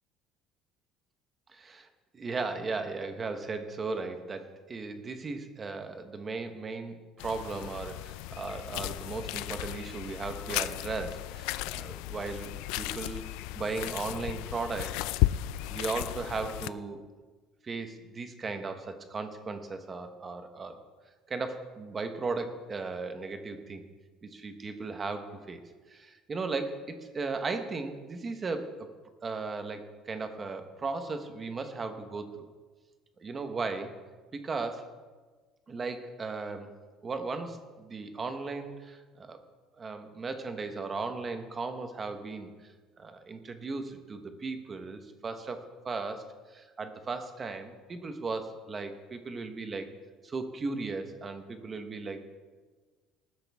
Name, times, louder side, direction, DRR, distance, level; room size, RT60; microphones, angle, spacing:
voice 1, 1.5-1.9 2.1-13.3 13.6-15.2 15.7-17.0 17.6-20.8 21.3-23.8 24.2-25.6 25.9-28.9 29.2-32.3 33.2-34.0 34.3-34.9 35.7-36.7 37.0-39.4 39.8-42.5 43.0-49.9 50.2-52.3, right 3 dB, 20° right, 7 dB, 1.1 m, -36 dB
sound 1, 7.2-16.7, left 17 dB, 85° left, 0.4 m, -34 dB
19.5 x 12.5 x 3.5 m, 1.4 s
cardioid pair, 175°, 0 cm